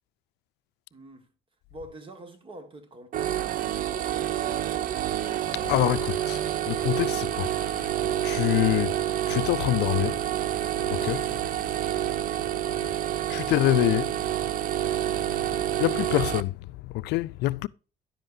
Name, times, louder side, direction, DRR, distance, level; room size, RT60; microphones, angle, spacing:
voice 1, 0.9-1.3 1.7-3.4 3.7-5.1, right 1 dB, 30° right, 1.6 m, -46 dB
sound 1, 3.1-16.4, right 12 dB, 55° right, 0.6 m, -28 dB
voice 2, 5.5-6.4 6.7-8.0 8.2-9.0 9.3-10.2 10.9-11.3 13.3-14.1 15.5-17.7, left 17 dB, 85° left, 0.4 m, -26 dB
10.5 x 7.8 x 2.6 m
cardioid pair, 110°, 17 cm